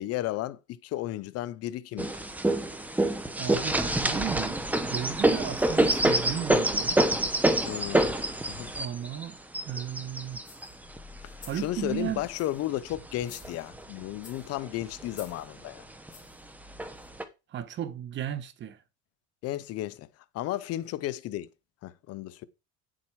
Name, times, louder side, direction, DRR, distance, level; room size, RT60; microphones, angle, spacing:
voice 1, 0.0-2.1 7.6-8.1 8.5-8.7 11.2-15.8 19.4-20.1 20.3-21.5 21.8-22.4, left 14 dB, 55° left, 0.8 m, -34 dB
sound 1, 2.0-12.3 12.9-13.8 14.3-14.4 14.6-15.3 16.1-16.2 16.8-17.2, right 1 dB, 5° right, 1.1 m, -27 dB
voice 2, 3.3-7.1 8.7-9.4 9.6-10.4 11.4-12.2 17.5-18.8, right 10 dB, 40° right, 1.2 m, -35 dB
sound 2, 10.4-10.8 11.2-11.7 12.2-12.7 13.1-13.8 14.2-14.5 15.1-15.4 16.1-16.4 17.0-17.1, left 5 dB, 25° left, 4.4 m, -51 dB
9.8 x 7.6 x 4.7 m
cardioid pair, 160°, 30 cm